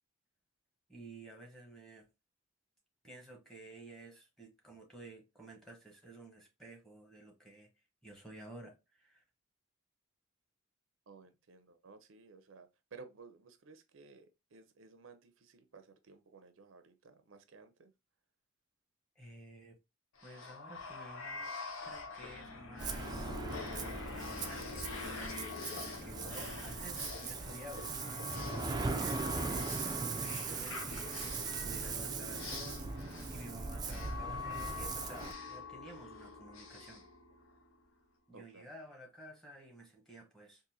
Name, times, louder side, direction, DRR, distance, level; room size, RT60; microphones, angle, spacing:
voice 1, 0.9-2.0 3.0-7.7 8.0-9.2 19.2-19.8 20.2-21.5 21.8-23.4 24.1-37.0 38.3-40.6, right 1 dB, ahead, 1.0 m, -53 dB
voice 2, 11.1-17.9 38.3-38.6, right 4 dB, 70° right, 0.5 m, -56 dB
sound 1, 20.2-37.8, left 4 dB, 80° left, 0.8 m, -45 dB
Ocean, 22.8-35.3, right 4 dB, 20° right, 0.3 m, -39 dB
3.8 x 2.5 x 2.7 m
head